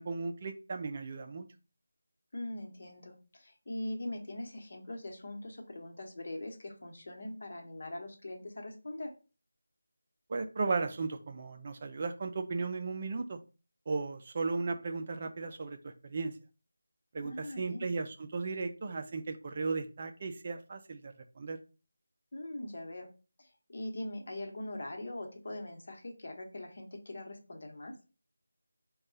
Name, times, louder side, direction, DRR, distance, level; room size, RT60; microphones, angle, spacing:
voice 1, 0.0-1.5 10.3-13.4 13.9-16.3 17.1-21.6, right 4 dB, 35° right, 6 dB, 0.4 m, -36 dB
voice 2, 2.3-9.1 17.2-17.9 22.3-23.1 23.4-27.9, left 1 dB, 50° left, 3 dB, 1.1 m, -42 dB
5.2 x 2.3 x 3.9 m, 0.33 s
figure-of-eight pair, 165°, 0 cm